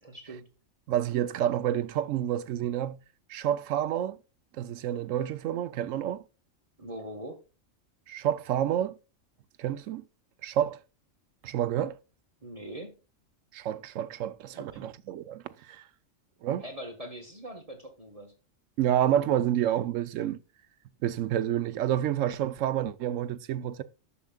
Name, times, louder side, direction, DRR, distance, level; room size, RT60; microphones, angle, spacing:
voice 1, 0.0-0.5 6.8-7.4 12.4-13.0 14.5-15.0 16.6-18.3, right 1 dB, 30° right, 1.3 m, -42 dB
voice 2, 0.9-3.0 3.3-4.2 4.6-6.2 8.1-8.9 9.6-10.0 10.4-10.8 11.4-12.0 13.5-15.8 16.4-16.6 18.8-20.4 21.0-23.8, right 11 dB, 75° right, 1.0 m, -29 dB
11.0 x 6.9 x 2.3 m
omnidirectional pair, 1.3 m